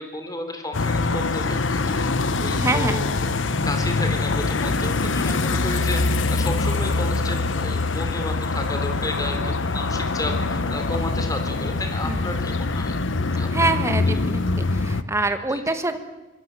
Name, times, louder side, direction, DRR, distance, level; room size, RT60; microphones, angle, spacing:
voice 1, 0.0-2.1 2.4-13.0 13.2-13.7 14.1-14.2 15.5-15.6, left 1 dB, 20° left, 6 dB, 3.4 m, -33 dB
sound 1, 0.7-15.0, left 3 dB, 75° left, 1.0 m, -24 dB
voice 2, 2.6-3.0 12.0-12.4 13.3-16.0, right 2 dB, 15° right, 8 dB, 1.5 m, -25 dB
24.5 x 21.0 x 7.6 m, 1.1 s
head